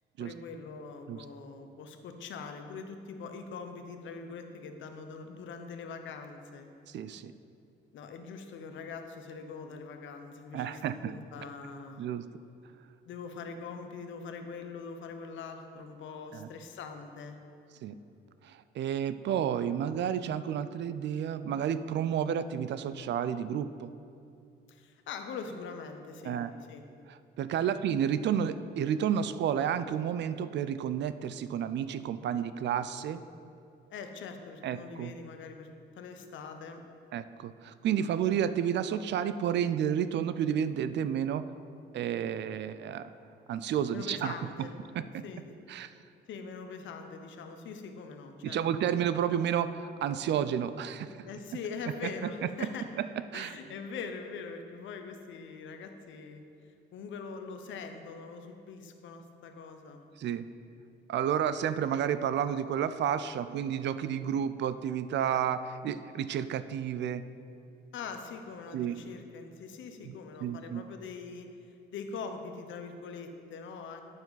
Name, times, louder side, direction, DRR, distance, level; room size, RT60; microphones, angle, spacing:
voice 1, 0.2-6.7 7.9-12.0 13.0-17.4 24.7-26.4 26.7-26.8 27.6-27.8 33.9-35.7 36.0-36.8 43.9-44.7 45.2-45.5 46.3-48.6 51.3-52.8 53.3-56.4 56.9-60.0 67.9-71.5 71.9-74.0, left 5 dB, 75° left, 6 dB, 0.8 m, -43 dB
voice 2, 6.9-7.3 10.5-11.1 12.0-12.3 16.3-16.5 17.8-18.0 18.4-23.9 26.2-26.5 27.1-33.2 34.6-35.1 37.1-41.4 41.9-43.1 43.5-44.7 44.9-45.2 45.7-45.9 48.4-51.3 52.6-52.7 53.0-53.1 53.3-53.6 60.2-60.5 61.1-67.2 68.7-68.9 70.0-70.2 70.4-70.8, right 9 dB, 65° right, 13 dB, 0.4 m, -31 dB
9.1 x 6.9 x 4.0 m, 2.6 s
cardioid pair, 90°, 20 cm